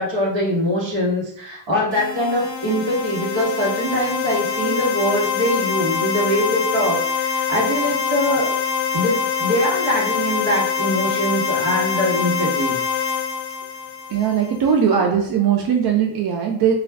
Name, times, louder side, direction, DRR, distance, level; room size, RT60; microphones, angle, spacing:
voice 1, 0.0-8.6 8.9-12.8, equal, 75° right, -3 dB, 1.2 m, -22 dB
sound 1, 1.9-14.6, left 6 dB, 85° left, 0.7 m, -24 dB
voice 2, 14.1-16.8, right 7 dB, 55° right, 1 dB, 0.5 m, -19 dB
2.4 x 2.2 x 3.3 m, 0.68 s
cardioid pair, 85°, 44 cm